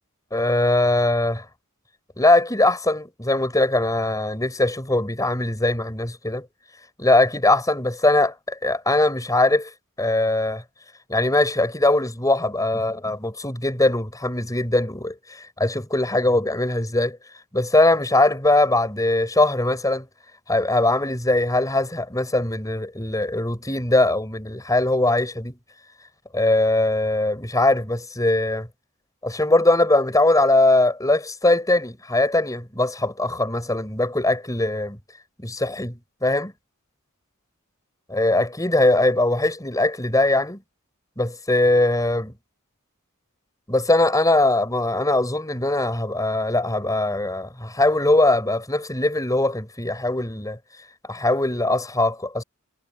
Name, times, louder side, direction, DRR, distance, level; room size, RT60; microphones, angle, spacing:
voice 1, 0.3-1.4 2.2-6.4 7.0-9.7 10.0-10.6 11.1-15.1 15.6-17.2 17.5-20.0 20.5-25.6 26.3-28.7 29.2-35.0 35.4-36.5 38.1-40.6 41.2-42.3 43.7-50.6 51.1-52.4, left 2 dB, 15° left, 6.6 m, -21 dB
head